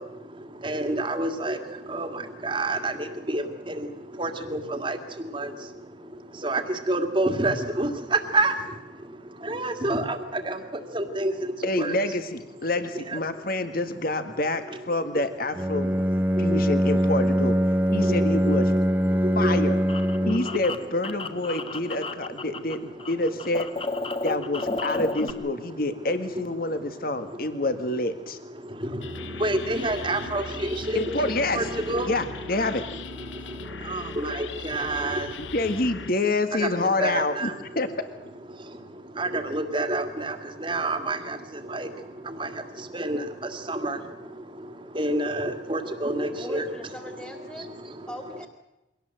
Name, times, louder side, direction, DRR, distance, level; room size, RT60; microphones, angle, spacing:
voice 1, 0.0-12.0 12.9-13.6 14.7-14.8 15.7-20.7 21.5-23.2 24.0-25.1 25.6-25.9 26.6-27.6 28.4-35.5 36.5-37.8 38.5-46.7 47.5-48.1, right 2 dB, 25° right, 7 dB, 2.1 m, -30 dB
voice 2, 11.6-15.9 16.4-17.6 17.9-18.7 19.3-19.8 20.3-23.7 24.2-28.4 30.9-31.6 32.1-32.8 35.4-37.5 37.7-37.9, left 2 dB, 50° left, 9 dB, 1.7 m, -27 dB
Bowed string instrument, 15.5-20.6, equal, 10° right, 0.7 m, -23 dB
sound 1, 19.4-22.7 23.0-25.3, left 3 dB, 30° left, 1.3 m, -33 dB
sound 2, 29.0-36.1, left 5 dB, 80° left, 0.8 m, -39 dB
voice 3, 46.3-47.7 48.1-48.5, left 1 dB, 10° left, 5 dB, 2.5 m, -40 dB
23.5 x 18.0 x 7.8 m, 0.98 s
head